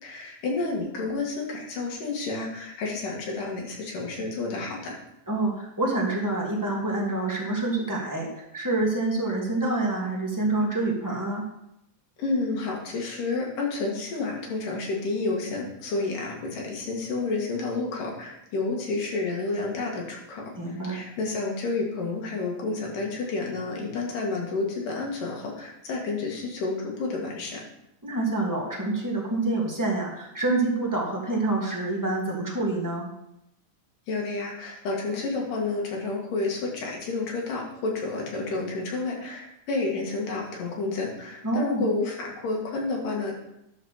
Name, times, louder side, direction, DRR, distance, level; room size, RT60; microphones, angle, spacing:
voice 1, 0.0-5.0 12.2-27.6 34.1-43.3, left 3 dB, 80° left, -1 dB, 3.5 m, -30 dB
voice 2, 5.3-11.4 20.6-21.0 28.0-33.1 41.4-41.9, right 2 dB, 10° right, -3 dB, 0.9 m, -27 dB
11.0 x 4.2 x 6.5 m, 0.83 s
omnidirectional pair, 3.8 m